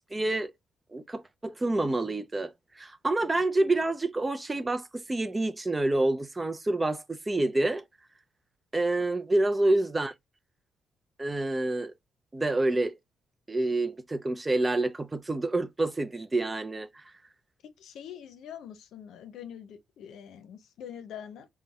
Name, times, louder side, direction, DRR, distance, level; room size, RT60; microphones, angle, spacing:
voice 1, 0.1-0.5 0.9-7.8 8.7-10.1 11.2-11.9 12.3-13.0 13.5-17.0, right 2 dB, 20° right, 0.4 m, -28 dB
voice 2, 17.8-21.5, left 9 dB, 80° left, 0.6 m, -44 dB
3.8 x 2.1 x 2.3 m
cardioid pair, 90°, 0 cm